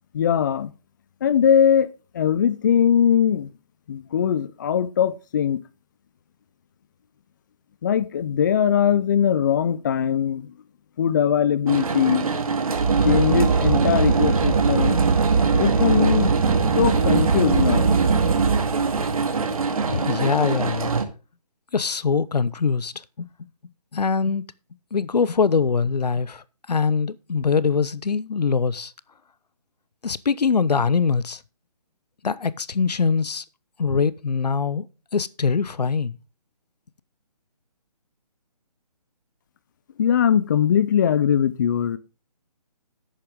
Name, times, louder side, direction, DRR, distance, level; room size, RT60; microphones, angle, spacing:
voice 1, 0.1-0.7 1.2-1.9 2.1-3.5 3.9-5.6 7.8-10.5 11.0-12.3 13.0-15.1 15.5-16.3 16.8-17.9 40.0-42.0, left 8 dB, 30° left, 0.6 m, -20 dB
sound 1, 11.7-21.0, right 5 dB, 60° right, 2.3 m, -21 dB
voice 2, 19.9-20.9 21.7-22.9 23.2-23.3 23.9-24.4 24.9-28.9 30.0-31.4 32.2-33.4 33.8-34.8 35.1-36.2, left 5 dB, 85° left, 0.9 m, -23 dB
11.5 x 8.5 x 3.6 m
hypercardioid pair, 160°, 20 cm